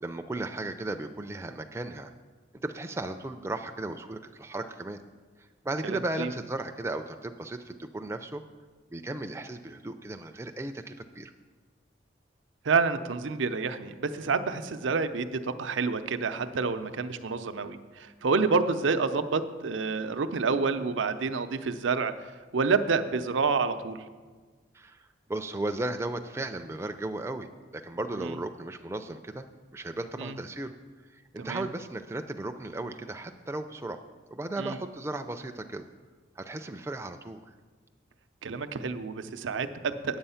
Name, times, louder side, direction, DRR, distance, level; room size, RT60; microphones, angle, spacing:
voice 1, 0.0-2.1 2.6-5.0 5.6-8.4 8.9-11.3 24.7-27.5 27.7-29.5 29.7-30.7 31.1-34.0 34.3-35.9 36.4-37.5, right 2 dB, 15° right, 6 dB, 0.3 m, -35 dB
voice 2, 5.8-6.3 12.6-22.1 22.5-24.0 28.2-28.3 30.2-30.3 31.4-31.7 34.6-34.8 38.4-40.2, right 4 dB, 85° right, 10 dB, 0.6 m, -28 dB
8.9 x 7.9 x 5.6 m, 1.4 s
head